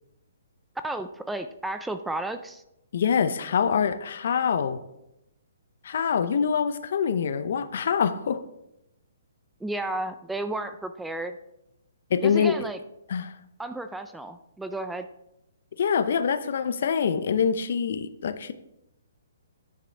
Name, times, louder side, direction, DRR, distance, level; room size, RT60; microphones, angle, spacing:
voice 1, 0.8-2.6 9.6-11.4 12.2-12.8 13.6-15.1, right 2 dB, 5° right, 9 dB, 0.3 m, -33 dB
voice 2, 2.9-4.8 5.8-8.4 12.1-12.6 13.1-13.3 15.8-18.5, left 7 dB, 60° left, 13 dB, 0.6 m, -25 dB
10.0 x 6.8 x 3.4 m, 0.86 s
hypercardioid pair, 160°, 0 cm